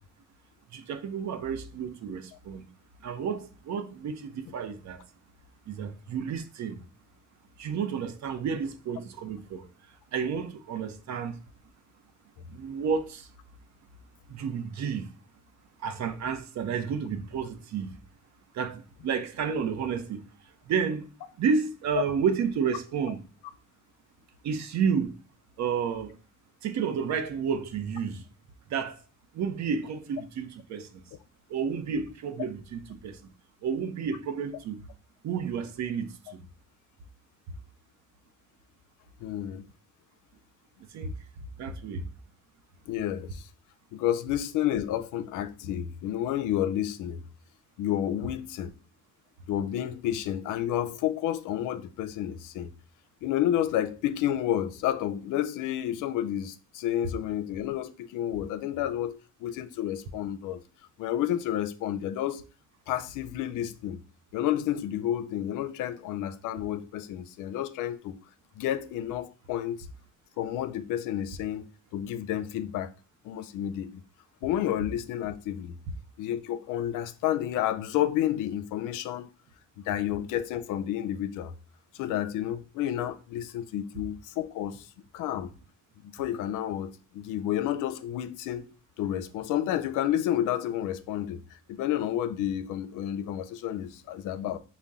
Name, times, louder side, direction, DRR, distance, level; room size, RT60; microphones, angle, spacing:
voice 1, 0.7-2.6 3.0-5.0 5.7-6.8 7.6-11.4 12.5-13.3 14.3-15.1 15.8-18.0 18.5-20.2 20.7-21.1 21.4-23.2 24.4-25.2 25.6-26.1 26.6-28.2 28.7-29.0 29.3-31.0 31.5-33.2 33.6-34.8 35.2-36.4 40.9-41.1 41.6-42.1, right 6 dB, 65° right, 0.6 m, -31 dB
voice 2, 39.2-39.6 42.9-43.5 43.9-47.2 47.8-48.7 49.5-52.7 53.2-60.6 61.0-62.4 62.9-64.0 64.3-68.2 68.6-69.9 70.4-71.7 71.9-72.9 73.2-74.0 74.4-75.8 76.2-79.3 79.9-81.5 81.9-84.9 85.1-85.5 86.1-91.4 91.7-94.6, left 11 dB, 90° left, 0.5 m, -30 dB
5.4 x 2.2 x 3.5 m
cardioid pair, 90°, 30 cm